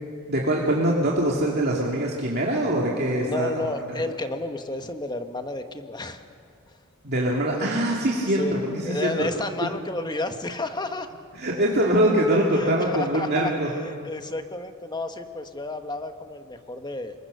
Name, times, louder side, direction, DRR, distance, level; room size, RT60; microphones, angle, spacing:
voice 1, 0.3-3.7 3.9-4.0 7.0-9.3 11.3-13.7, right 1 dB, 50° right, -3 dB, 2.4 m, -23 dB
voice 2, 3.2-6.2 7.5-7.8 8.4-8.6 8.8-11.1 12.5-17.1, left 2 dB, 20° left, 7 dB, 1.2 m, -31 dB
26.5 x 22.5 x 6.7 m, 2.2 s
head